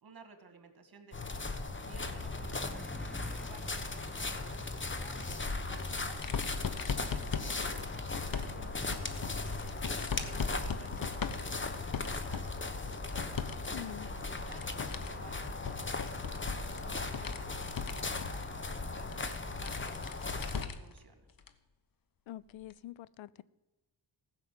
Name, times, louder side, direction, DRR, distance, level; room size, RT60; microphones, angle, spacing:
voice 1, 0.0-1.5 1.8-2.9 3.3-6.2 6.8-9.9 10.2-12.5 12.8-13.4 13.7-15.5 16.0-18.6 18.9-21.2, right 4 dB, 50° right, 1.9 m, -56 dB
sound 1, 1.1-20.6, left 3 dB, 25° left, 1.1 m, -38 dB
sound 2, 1.9-6.5, left 1 dB, ahead, 0.5 m, -46 dB
sound 3, 5.2-13.7 14.0-21.0 21.4-21.5 22.7-22.8, left 6 dB, 45° left, 1.0 m, -40 dB
voice 2, 13.7-14.1 22.3-23.4, left 13 dB, 85° left, 0.5 m, -45 dB
15.0 x 6.5 x 7.7 m
cardioid pair, 70°, 46 cm